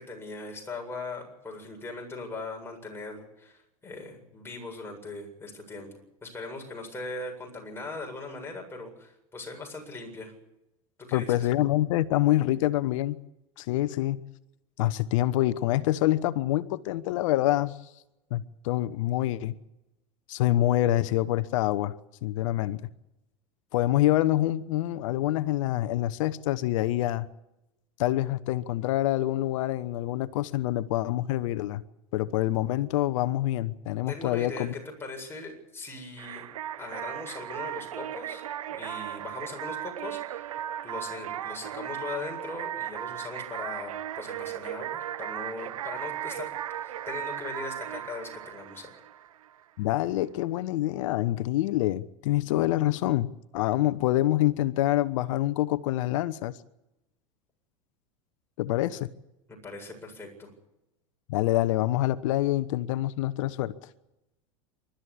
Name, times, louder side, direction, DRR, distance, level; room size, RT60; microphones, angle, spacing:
voice 1, 0.0-5.9 6.2-10.3 11.0-11.5 34.1-36.5 36.8-38.4 38.7-40.5 40.8-48.9 59.5-60.5, left 3 dB, 15° left, 7.9 m, -40 dB
voice 2, 11.1-13.2 13.6-14.2 14.8-17.8 18.3-19.6 20.3-21.9 22.2-22.8 23.7-27.3 28.0-31.8 32.1-34.7 49.8-56.6 58.6-59.1 61.3-63.7, left 15 dB, 65° left, 1.0 m, -26 dB
sound 1, 36.2-49.6, right 11 dB, 85° right, 0.9 m, -36 dB
28.0 x 13.0 x 8.6 m
hypercardioid pair, 95°, 17 cm